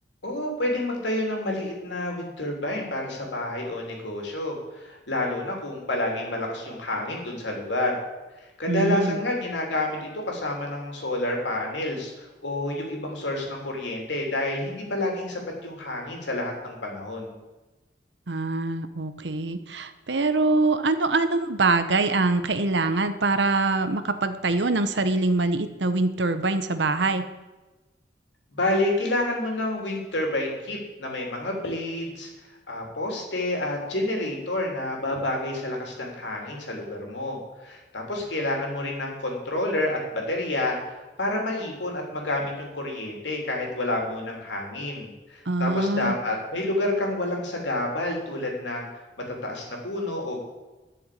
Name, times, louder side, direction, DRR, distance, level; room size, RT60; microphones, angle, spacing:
voice 1, 0.2-8.0 8.6-17.4 28.5-32.3 32.7-48.9 49.4-50.5, left 1 dB, 75° left, 0 dB, 3.3 m, -29 dB
voice 2, 8.7-9.2 18.3-27.3 45.5-46.2, right 3 dB, 75° right, 10 dB, 1.0 m, -24 dB
12.0 x 7.0 x 8.5 m, 1.1 s
head